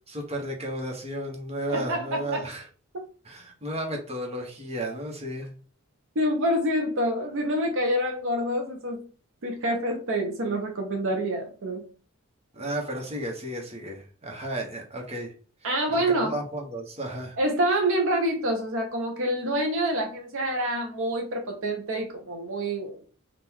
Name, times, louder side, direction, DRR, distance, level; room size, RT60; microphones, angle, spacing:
voice 1, 0.1-2.7 3.2-5.5 12.5-15.3 15.6-17.4, right 1 dB, 30° right, 1.1 m, -33 dB
voice 2, 1.7-2.4 2.9-3.0 6.2-9.0 9.4-11.8 15.6-16.3 17.4-23.1, right 1 dB, 60° right, 0.7 m, -27 dB
3.6 x 2.5 x 4.5 m
head